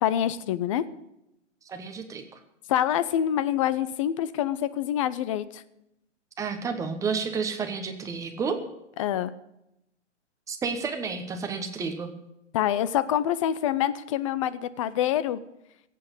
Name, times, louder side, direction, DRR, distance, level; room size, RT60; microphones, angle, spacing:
voice 1, 0.0-0.8 2.7-5.6 9.0-9.3 12.5-15.4, left 11 dB, 30° left, 15 dB, 0.6 m, -26 dB
voice 2, 1.7-2.4 6.4-8.6 10.5-12.1, right 5 dB, 10° right, 6 dB, 1.1 m, -31 dB
16.5 x 8.4 x 8.1 m, 0.85 s
hypercardioid pair, 140°, 36 cm